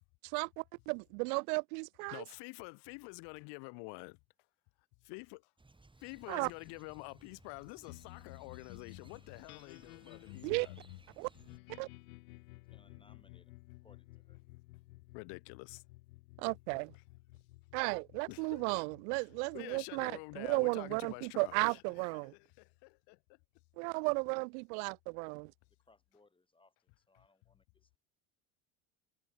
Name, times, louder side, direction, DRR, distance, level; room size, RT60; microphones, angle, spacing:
voice 1, 0.3-2.2 6.3-6.5 10.4-10.7 11.2-11.3 11.8-11.9 16.4-16.9 17.7-22.3 23.8-25.5, right 36 dB, 75° right, 0.5 m, -34 dB
voice 2, 2.1-4.2 5.0-5.4 6.0-10.7 15.1-15.8 18.3-18.9 19.1-19.3 19.5-23.2, left 33 dB, 70° left, 2.1 m, -48 dB
sound 1, 5.6-11.6, right 2 dB, 10° right, 7.5 m, -62 dB
sound 2, 7.9-22.6, left 22 dB, 90° left, 1.0 m, -55 dB
voice 3, 12.7-14.4 25.9-28.0, left 3 dB, 10° left, 3.8 m, -68 dB
supercardioid pair, 105°, 42 cm